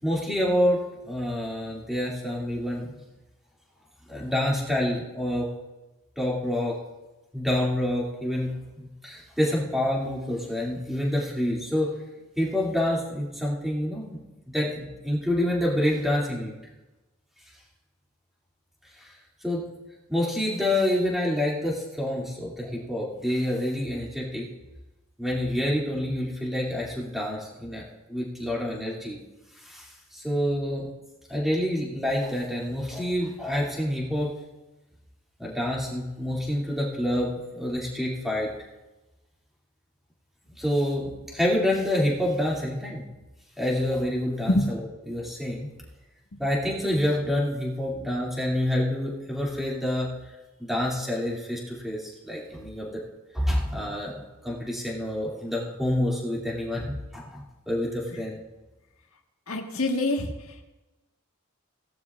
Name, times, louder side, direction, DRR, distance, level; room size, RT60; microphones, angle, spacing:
voice 1, 0.0-3.0 4.1-5.5 6.2-6.8 7.3-8.5 8.8-11.9 12.4-16.5 19.0-19.1 19.4-19.6 20.1-24.5 25.2-27.8 28.1-29.2 29.6-30.9 31.3-34.3 35.4-38.5 40.6-43.0 43.6-44.8 45.1-45.7 46.4-50.1 50.6-52.9 53.3-58.4, left 1 dB, ahead, -4 dB, 2.4 m, -27 dB
voice 2, 59.5-60.6, left 1 dB, 80° left, 3 dB, 1.5 m, -26 dB
18.0 x 12.0 x 2.4 m, 1.1 s
head